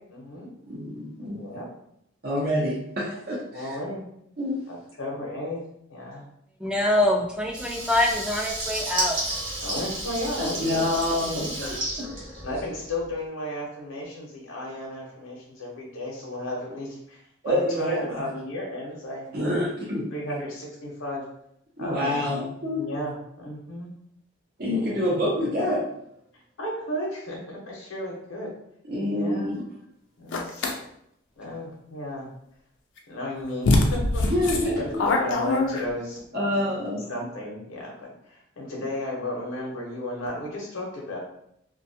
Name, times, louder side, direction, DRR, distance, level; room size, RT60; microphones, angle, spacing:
voice 1, 0.1-0.5 1.2-1.7 3.1-3.2 3.5-4.0 4.7-5.6 5.9-6.2 9.6-10.8 11.2-11.7 12.4-17.2 17.4-19.6 20.1-21.2 21.8-22.2 22.7-23.9 24.7-25.0 26.6-28.5 29.0-29.5 30.2-30.6 31.4-32.3 33.1-36.4 36.7-41.2, left 1 dB, 90° left, -3 dB, 0.7 m, -34 dB
voice 2, 0.7-1.4 2.2-3.7 4.4-4.5 10.4-12.1 17.4-18.2 19.3-20.0 21.8-22.9 24.6-25.8 28.9-29.6 34.3-35.1 36.3-37.0, left 1 dB, 50° right, -7 dB, 0.6 m, -27 dB
voice 3, 6.6-9.2, left 1 dB, 5° right, -1 dB, 0.4 m, -24 dB
Water tap faucet / Liquid, 7.5-13.0, right 1 dB, 80° right, 1.1 m, -32 dB
sound 1, 30.3-30.8 33.0-33.1 33.6-36.2, left 2 dB, 65° left, 0.4 m, -23 dB
2.5 x 2.3 x 2.6 m, 0.75 s
head